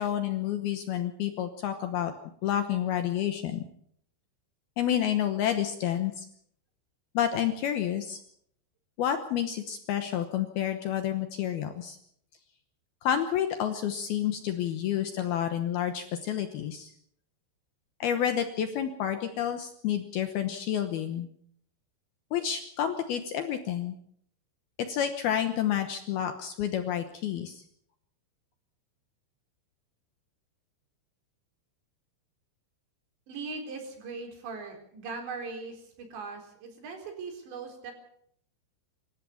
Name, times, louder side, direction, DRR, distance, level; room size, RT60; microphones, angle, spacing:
voice 1, 0.0-2.1 2.4-3.6 4.8-6.3 7.1-8.2 9.0-12.0 13.0-16.9 18.0-21.3 22.3-24.0 24.8-27.6, left 10 dB, 70° left, 7 dB, 2.5 m, -29 dB
voice 2, 33.3-37.9, right 4 dB, 65° right, 3 dB, 6.1 m, -40 dB
26.0 x 14.5 x 7.1 m, 0.69 s
omnidirectional pair, 5.5 m